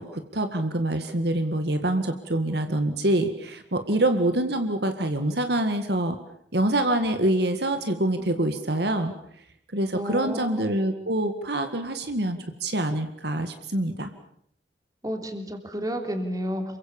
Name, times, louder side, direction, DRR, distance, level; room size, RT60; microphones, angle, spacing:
voice 1, 0.0-6.2 6.5-9.1 9.7-14.1, right 1 dB, 60° right, 7 dB, 1.9 m, -25 dB
voice 2, 9.9-10.7 15.0-16.6, equal, 20° right, 6 dB, 3.3 m, -31 dB
28.0 x 23.5 x 7.2 m, 0.68 s
head